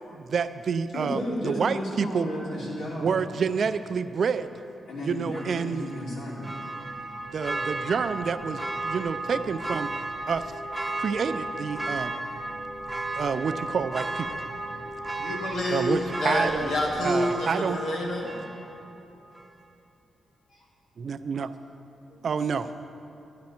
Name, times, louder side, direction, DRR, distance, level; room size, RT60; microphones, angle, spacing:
voice 1, 0.1-2.3 3.0-4.5 5.0-5.8 7.3-9.9 10.3-10.5 11.0-12.1 13.1-14.4 15.7-16.7 17.0-17.8 21.0-21.5 22.2-22.8, right 6 dB, 45° right, 11 dB, 0.3 m, -28 dB
voice 2, 0.9-3.1 4.9-6.5 20.6-20.7 22.1-22.2, equal, 85° left, -6 dB, 2.9 m, -33 dB
Church bell, 5.3-19.0 19.4-19.5, right 2 dB, ahead, 0.6 m, -34 dB
voice 3, 15.2-18.3, left 1 dB, 70° left, -1 dB, 1.5 m, -28 dB
11.5 x 10.5 x 4.3 m, 2.8 s
wide cardioid pair, 175°, 0 cm